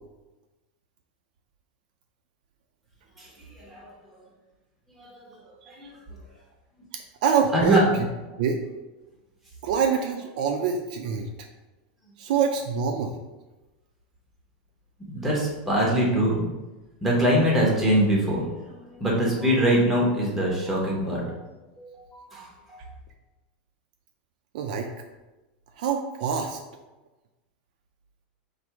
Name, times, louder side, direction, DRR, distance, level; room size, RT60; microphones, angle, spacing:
voice 1, 3.2-4.2 4.9-5.4 5.7-5.9 7.5-7.8 15.1-16.5 17.0-21.4 21.8-22.8, equal, 5° right, -3 dB, 0.9 m, -24 dB
voice 2, 6.9-8.1 8.4-8.6 9.6-11.3 12.2-13.2 24.5-24.9 25.8-26.6, right 6 dB, 55° right, 4 dB, 0.4 m, -25 dB
4.3 x 2.6 x 4.6 m, 1.1 s
supercardioid pair, 180°, 5 cm